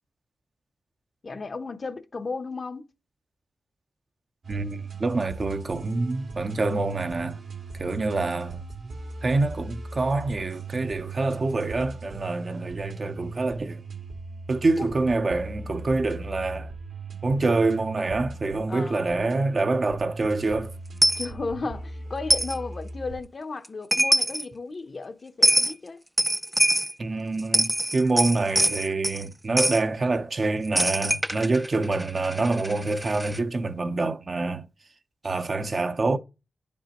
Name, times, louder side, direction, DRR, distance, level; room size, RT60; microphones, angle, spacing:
voice 1, 1.2-2.9 14.8-14.9 15.4-15.5 18.7-19.1 21.2-26.0, left 3 dB, 50° left, 0.8 m, -34 dB
sound 1, 4.4-23.2, right 3 dB, 75° right, 2.2 m, -38 dB
voice 2, 4.5-7.4 7.7-8.7 9.2-13.8 14.5-16.7 17.2-20.7 27.0-34.7 35.2-36.2, right 3 dB, 50° right, 0.7 m, -26 dB
Coin (dropping), 21.0-21.3 22.3-22.6 23.6-23.7 23.9-24.4 25.4-25.7 26.2-26.9 27.4-29.2 29.6-29.8 30.8-33.4, right 1 dB, 10° right, 0.4 m, -23 dB
9.8 x 5.4 x 3.0 m
cardioid pair, 60°, 0 cm